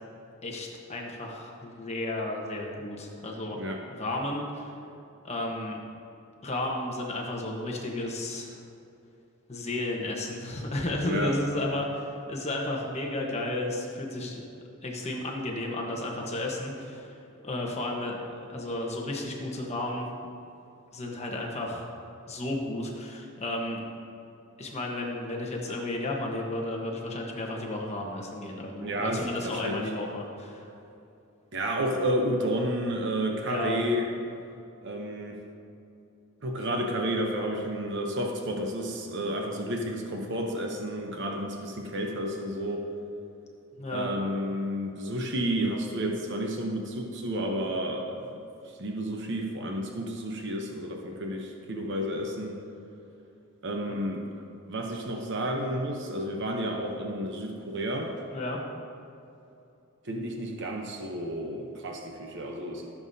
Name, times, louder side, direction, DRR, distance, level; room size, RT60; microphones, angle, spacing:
voice 1, 0.4-3.6 3.9-4.8 5.2-5.8 6.4-8.6 9.5-14.5 14.8-18.2 18.5-20.1 20.9-21.9 22.3-23.8 24.6-30.7 33.4-33.9 43.8-44.1 58.3-58.6, left 1 dB, 30° left, 0 dB, 1.1 m, -33 dB
voice 2, 11.0-11.3 28.8-29.8 31.5-34.1 34.8-35.4 36.4-42.8 43.9-48.2 48.8-52.5 53.6-54.2 54.7-58.1 60.0-62.9, equal, 55° right, 1 dB, 0.9 m, -31 dB
14.5 x 7.1 x 2.7 m, 2.7 s
head